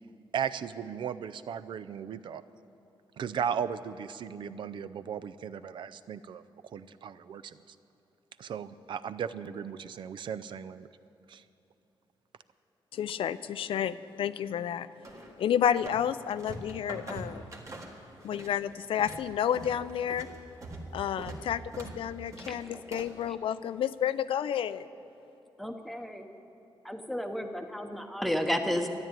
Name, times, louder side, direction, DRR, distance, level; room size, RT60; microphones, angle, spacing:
voice 1, 0.3-2.4 3.2-7.8 8.4-10.9 11.3-11.4, right 8 dB, 65° right, 14 dB, 0.5 m, -36 dB
voice 2, 12.9-14.9 15.2-17.5 18.2-20.3 20.9-24.9, left 9 dB, 85° left, 14 dB, 0.5 m, -30 dB
sound 1, 15.0-16.0 16.3-18.5 18.8-23.2, right 2 dB, 35° right, 1.7 m, -43 dB
voice 3, 22.5-22.8 23.3-23.4 25.6-26.3 26.8-28.9, equal, ahead, 5 dB, 0.9 m, -32 dB
13.0 x 11.0 x 9.0 m, 2.9 s
wide cardioid pair, 170°, 9 cm